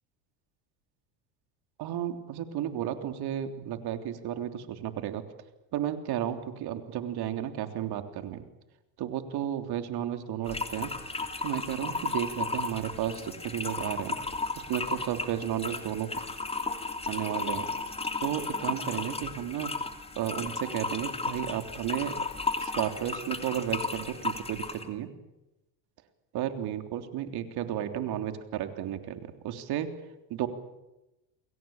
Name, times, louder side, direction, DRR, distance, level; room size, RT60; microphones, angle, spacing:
voice 1, 1.8-5.2 5.7-8.5 9.0-10.9 11.4-14.2 14.6-16.1 17.1-17.7 18.2-19.7 20.2-22.1 22.6-25.1 26.3-29.9 30.3-30.5, right 11 dB, 50° right, 7 dB, 3.5 m, -33 dB
sound 1, 10.5-24.9, left 3 dB, 10° left, 2.9 m, -34 dB
29.0 x 22.0 x 8.9 m, 0.96 s
supercardioid pair, 120°, 48 cm